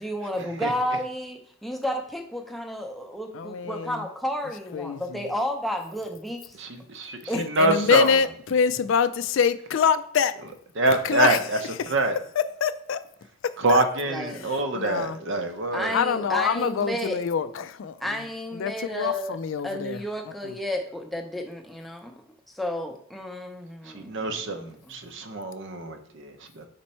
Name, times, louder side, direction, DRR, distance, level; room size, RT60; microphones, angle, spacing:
voice 1, 0.0-6.6 7.3-7.4 14.0-14.5 15.7-17.2 18.0-19.4 19.6-22.1 22.5-24.6 24.9-25.0, equal, ahead, 0.6 m, -32 dB
voice 2, 3.3-4.0 4.7-5.3 7.3-10.4 10.9-11.9 12.4-13.0 13.4-13.8 14.3-14.5 14.7-15.2 15.9-18.1 18.5-20.0 20.4-20.5, left 6 dB, 60° left, 0.3 m, -25 dB
voice 3, 7.5-8.1 10.8-11.4 11.9-12.1 13.6-16.0 23.9-26.7, right 2 dB, 55° right, 0.7 m, -25 dB
5.2 x 4.4 x 4.2 m
head